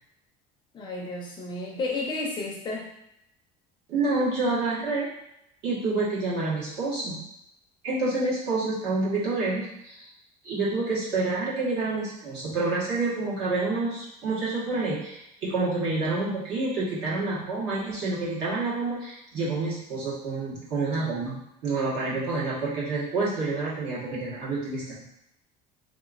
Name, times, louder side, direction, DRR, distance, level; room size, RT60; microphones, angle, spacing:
voice 1, 0.7-2.9, left 2 dB, 25° left, -1 dB, 0.5 m, -32 dB
voice 2, 3.9-5.1 5.6-7.2 7.8-10.1 10.4-25.0, right 3 dB, 65° right, -7 dB, 1.5 m, -28 dB
3.6 x 2.8 x 2.5 m, 0.80 s
cardioid pair, 165°, 18 cm